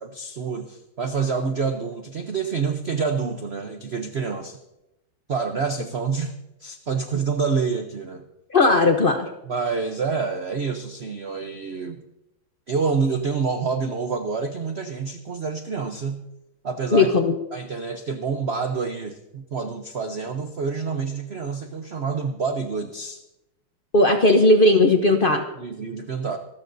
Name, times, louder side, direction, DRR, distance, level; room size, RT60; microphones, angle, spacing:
voice 1, 0.0-4.6 5.3-6.3 6.6-8.2 9.5-12.0 12.7-16.2 16.6-17.1 17.5-23.2 25.6-26.4, right 5 dB, 70° right, 6 dB, 0.6 m, -27 dB
voice 2, 8.5-9.3 16.9-17.3 23.9-25.4, left 2 dB, 65° left, 5 dB, 0.5 m, -17 dB
26.0 x 13.0 x 2.6 m, 0.93 s
omnidirectional pair, 2.3 m